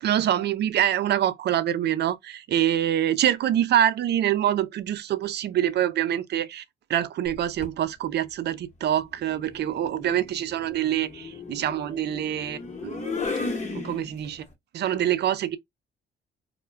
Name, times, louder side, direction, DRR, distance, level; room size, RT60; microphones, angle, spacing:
voice 1, 0.0-6.6 6.9-13.2 13.7-14.4 14.7-15.6, right 11 dB, 60° right, 0.4 m, -25 dB
sound 1, 7.3-7.8 9.2-14.4, left 4 dB, 35° left, 1.0 m, -35 dB
2.2 x 2.1 x 3.2 m
cardioid pair, 90°, 20 cm